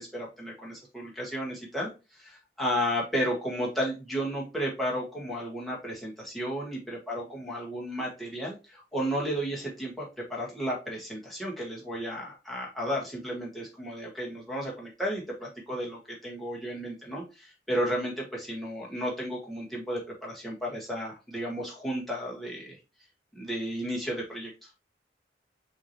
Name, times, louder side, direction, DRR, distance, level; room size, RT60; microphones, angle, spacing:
voice 1, 0.0-22.8 23.3-24.7, equal, ahead, -4 dB, 1.5 m, -33 dB
5.7 x 3.0 x 2.9 m, 0.29 s
head